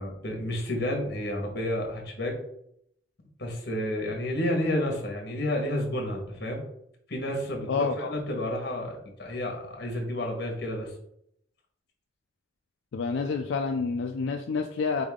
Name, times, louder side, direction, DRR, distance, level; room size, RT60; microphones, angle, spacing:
voice 1, 0.0-2.4 3.4-6.6 7.1-10.9, left 1 dB, 60° left, 1 dB, 1.3 m, -30 dB
voice 2, 7.7-8.1 12.9-15.0, left 4 dB, 85° left, 4 dB, 0.4 m, -28 dB
4.1 x 3.6 x 3.6 m, 0.74 s
head